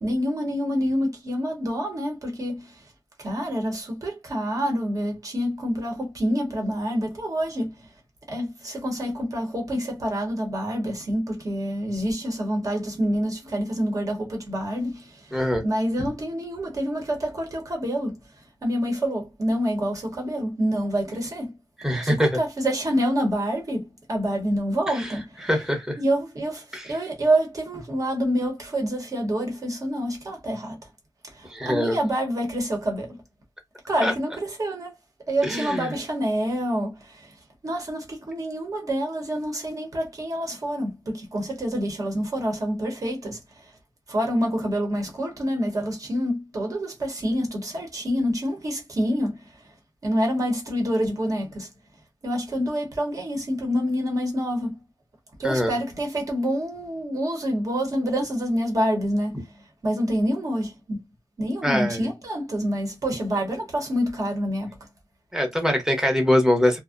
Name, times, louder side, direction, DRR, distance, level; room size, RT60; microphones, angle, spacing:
voice 1, 0.0-2.7 3.2-7.7 8.3-15.1 15.6-18.2 18.6-21.5 22.0-25.5 26.0-30.8 31.4-33.2 33.9-34.9 35.3-37.3 37.6-43.4 44.1-49.4 50.0-51.7 52.2-54.8 55.4-59.4 59.8-61.0 61.4-64.8, equal, 40° right, 0.9 m, -27 dB
voice 2, 15.3-15.7 21.8-22.4 24.9-26.0 26.7-26.9 31.5-32.0 34.0-34.1 35.4-35.9 55.4-55.7 61.6-62.1 65.3-66.8, left 1 dB, 5° right, 0.8 m, -23 dB
2.5 x 2.1 x 2.4 m
wide cardioid pair, 150°, 8 cm